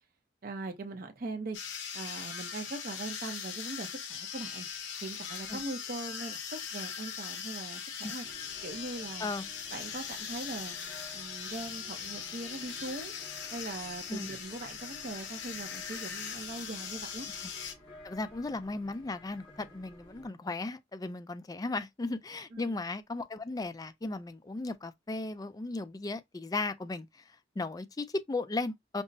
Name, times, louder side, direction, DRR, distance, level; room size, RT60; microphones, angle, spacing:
voice 1, 0.4-1.6 1.9-4.7 5.0-7.8 8.1-8.3 8.6-9.3 9.7-10.8 11.1-13.1 13.5-17.3 22.5-22.8, right 2 dB, 50° right, 0.6 m, -41 dB
sound 1, 1.5-17.7, left 7 dB, 75° left, 0.9 m, -40 dB
sound 2, 8.2-20.3, left 1 dB, 55° left, 2.8 m, -54 dB
voice 2, 18.0-27.2 27.6-29.0, left 2 dB, 20° left, 0.3 m, -36 dB
5.3 x 2.0 x 2.6 m
head